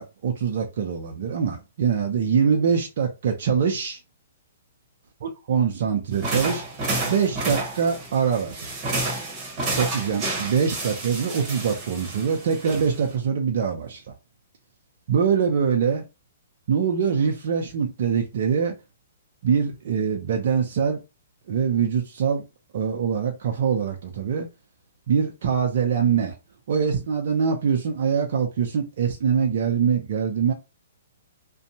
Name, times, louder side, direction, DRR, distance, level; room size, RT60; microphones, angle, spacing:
voice 1, 0.0-4.0 5.2-6.6 7.0-8.7 9.8-14.1 15.1-16.0 16.7-18.7 19.4-21.0 21.5-22.4 22.7-24.5 25.1-26.3 26.7-30.5, right 6 dB, 60° right, 0.6 m, -23 dB
sound 1, 6.1-13.1, right 2 dB, 30° right, 1.2 m, -30 dB
2.6 x 2.2 x 2.8 m
hypercardioid pair, 135°, 0 cm